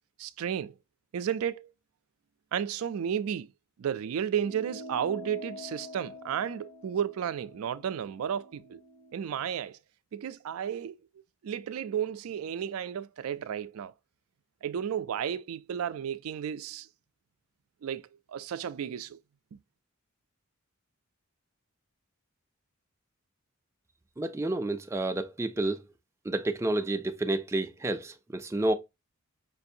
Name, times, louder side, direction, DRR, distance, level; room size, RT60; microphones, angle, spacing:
voice 1, 0.2-0.8 1.1-1.7 2.5-3.5 3.8-8.8 9.1-9.8 10.1-11.0 11.4-13.9 14.6-16.9 17.8-19.2 19.5-19.6, right 8 dB, 80° right, 0.4 m, -33 dB
sound 1, 4.4-9.2, left 1 dB, 30° left, 0.8 m, -46 dB
voice 2, 24.2-25.8 26.2-28.7, right 2 dB, 15° right, 0.4 m, -30 dB
5.3 x 2.5 x 2.6 m
head